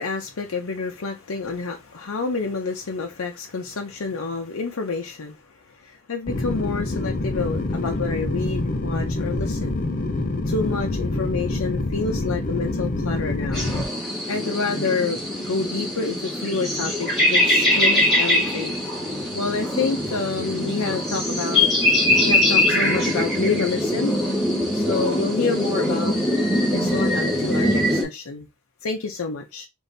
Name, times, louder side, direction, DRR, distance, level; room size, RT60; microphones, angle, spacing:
voice 1, 0.0-9.8 10.5-13.7 14.3-18.8 19.3-21.7 22.2-24.2 24.7-26.2 26.7-28.5 28.8-29.7, left 4 dB, 75° left, 0.7 m, -28 dB
sound 1, 6.3-13.8, left 2 dB, 40° left, 0.5 m, -26 dB
sound 2, 13.5-28.0, left 1 dB, ahead, 2.0 m, -22 dB
3.7 x 2.6 x 3.9 m
head